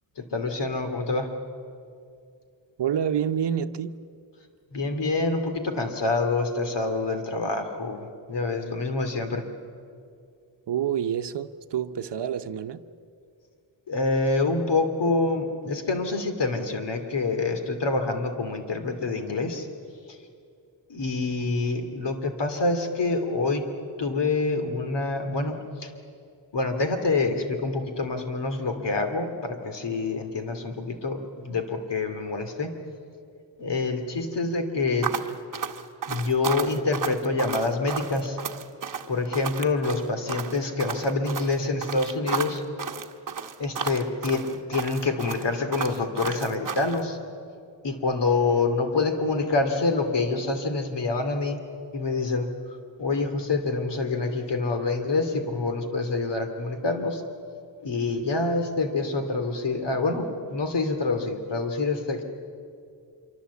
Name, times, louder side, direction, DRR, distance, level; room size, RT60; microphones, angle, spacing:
voice 1, 0.2-1.3 4.7-9.4 13.9-19.7 20.1-20.2 20.9-23.6 24.0-25.9 26.5-32.7 33.6-35.1 36.1-38.4 39.1-42.6 43.6-47.2 47.8-51.6 51.9-52.5 53.0-57.2 57.8-62.2, left 3 dB, 65° left, 7 dB, 2.7 m, -26 dB
voice 2, 2.8-3.9 10.7-12.8, right 9 dB, 65° right, 10 dB, 0.9 m, -28 dB
sound 1, 35.0-47.0, right 6 dB, 45° right, 1.2 m, -33 dB
26.0 x 24.0 x 8.4 m, 2.4 s
wide cardioid pair, 165°, 45 cm